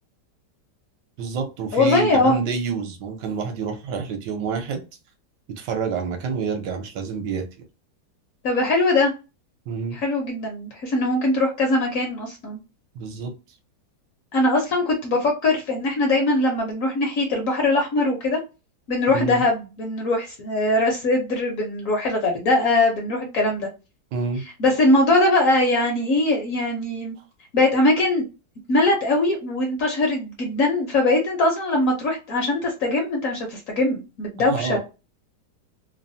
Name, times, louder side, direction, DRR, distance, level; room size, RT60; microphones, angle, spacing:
voice 1, 1.2-4.8 5.6-7.5 9.7-10.0 12.9-13.3 19.1-19.4 24.1-24.4 34.5-34.8, right 5 dB, 75° right, 1.3 m, -27 dB
voice 2, 1.7-2.3 8.4-9.1 9.9-12.6 14.3-18.4 18.9-23.7 24.6-27.2 27.5-28.2 28.7-34.8, left 2 dB, 60° left, 0.9 m, -21 dB
3.1 x 2.0 x 2.6 m
omnidirectional pair, 1.9 m